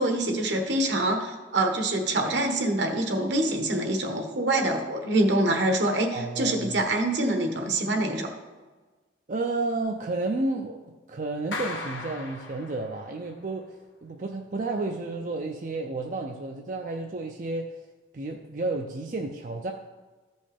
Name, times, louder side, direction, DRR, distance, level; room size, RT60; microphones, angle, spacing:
voice 1, 0.0-8.3, right 1 dB, 70° right, 4 dB, 1.2 m, -25 dB
voice 2, 6.1-6.7 9.3-10.8 11.1-17.8 18.1-19.7, right 2 dB, 45° right, 2 dB, 0.5 m, -31 dB
Clapping, 11.5-13.3, left 2 dB, 90° left, 1.2 m, -37 dB
14.5 x 5.3 x 3.4 m, 1.3 s
head